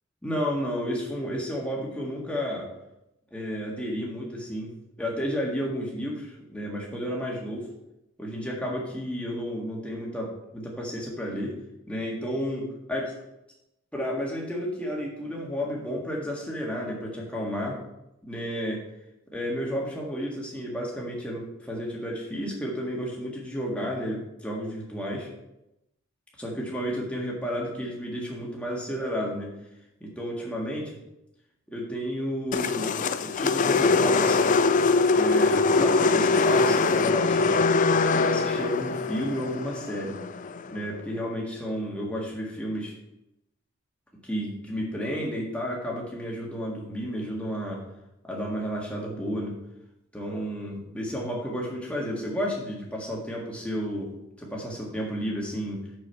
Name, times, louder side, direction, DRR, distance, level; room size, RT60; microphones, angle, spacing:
voice 1, 0.2-2.7 3.3-7.7 8.2-11.5 11.9-13.1 13.9-17.8 18.2-18.8 19.3-25.3 26.4-29.5 30.0-30.9 31.7-34.6 35.1-37.7 38.1-40.2 40.7-42.9 44.2-47.8 48.2-49.6 50.1-54.1 54.4-55.9, equal, 5° left, -3 dB, 1.8 m, -32 dB
sound 1, 32.5-40.8, left 4 dB, 35° left, 0.4 m, -23 dB
6.5 x 6.4 x 5.7 m, 0.86 s
head